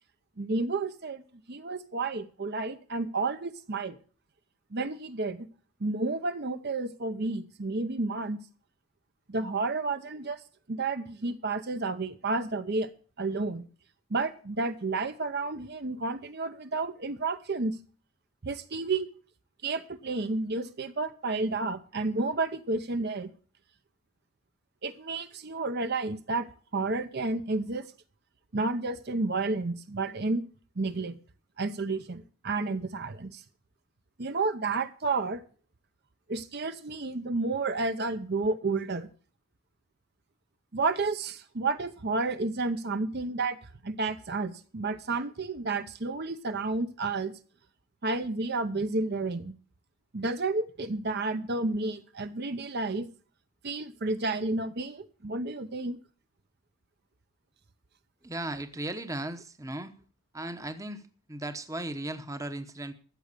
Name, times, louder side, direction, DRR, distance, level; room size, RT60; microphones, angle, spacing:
voice 1, 0.4-1.2 1.5-4.0 4.7-5.5 5.8-8.4 9.3-10.4 10.7-12.9 13.2-13.6 14.1-17.8 18.4-19.1 19.6-23.3 24.8-26.5 26.7-27.9 28.5-30.4 30.8-31.1 31.6-33.4 34.2-35.4 36.3-39.1 40.7-43.6 43.8-47.3 48.0-49.5 50.1-53.1 53.6-56.0, right 3 dB, 45° right, 10 dB, 0.7 m, -31 dB
voice 2, 58.2-60.0 60.3-62.9, right 1 dB, 15° right, 9 dB, 0.9 m, -36 dB
14.0 x 7.7 x 6.7 m, 0.42 s
head